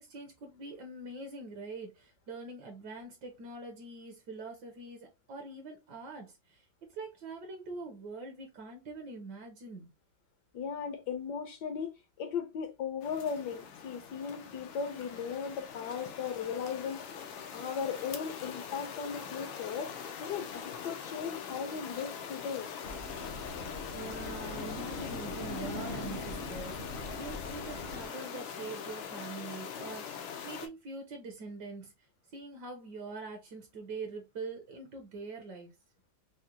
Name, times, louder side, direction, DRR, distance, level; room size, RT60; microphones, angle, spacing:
voice 1, 0.0-6.6 6.9-9.9 23.9-31.9 32.3-35.7, right 3 dB, 65° right, 1.3 m, -44 dB
voice 2, 10.5-11.9 12.2-17.0 17.5-22.7, left 6 dB, 70° left, 1.1 m, -37 dB
sound 1, 13.0-30.7, left 7 dB, 90° left, 1.4 m, -43 dB
sound 2, 22.8-28.1, left 2 dB, 50° left, 0.8 m, -41 dB
4.9 x 2.0 x 2.8 m
omnidirectional pair, 2.1 m